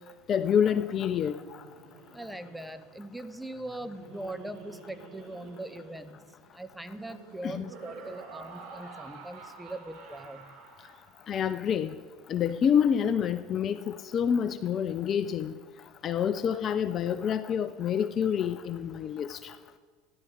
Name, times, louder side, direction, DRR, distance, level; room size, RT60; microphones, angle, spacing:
voice 1, 0.3-1.3 7.4-7.6 11.3-11.9 12.3-15.6 16.0-19.5, left 8 dB, 40° left, 12 dB, 0.5 m, -27 dB
Laughter, 0.9-11.4, right 4 dB, 55° right, 2.0 m, -49 dB
voice 2, 2.1-6.2 6.5-10.5, right 1 dB, 5° right, 9 dB, 1.0 m, -41 dB
13.5 x 11.0 x 5.1 m, 1.5 s
figure-of-eight pair, 70°, 0 cm